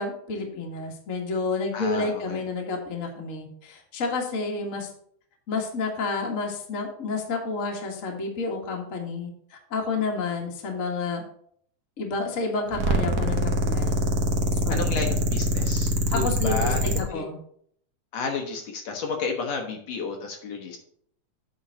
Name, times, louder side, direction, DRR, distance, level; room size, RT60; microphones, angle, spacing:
voice 1, 0.0-4.9 5.5-11.2 12.0-14.0 14.5-15.1 16.1-17.4, left 3 dB, 35° left, 1 dB, 1.4 m, -30 dB
voice 2, 1.7-2.4 14.7-17.2 18.1-20.8, left 4 dB, 65° left, 2 dB, 2.0 m, -32 dB
sound 1, 12.7-17.0, equal, 80° right, 0.8 m, -24 dB
8.8 x 4.0 x 6.7 m, 0.64 s
omnidirectional pair, 3.5 m